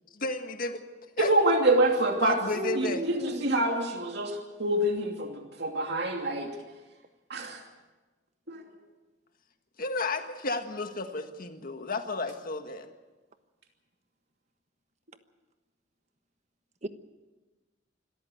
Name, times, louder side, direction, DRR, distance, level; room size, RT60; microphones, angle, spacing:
voice 1, 0.1-0.8 1.2-1.3 2.2-3.0 9.8-12.9, left 3 dB, 50° left, 6 dB, 1.7 m, -32 dB
voice 2, 1.2-2.3 2.7-6.5 7.3-7.6 8.5-8.6, right 1 dB, 65° right, 2 dB, 2.7 m, -26 dB
voice 3, 2.5-3.5 16.8-16.9, right 2 dB, 40° right, 9 dB, 1.2 m, -34 dB
25.5 x 14.0 x 8.1 m, 1.2 s
head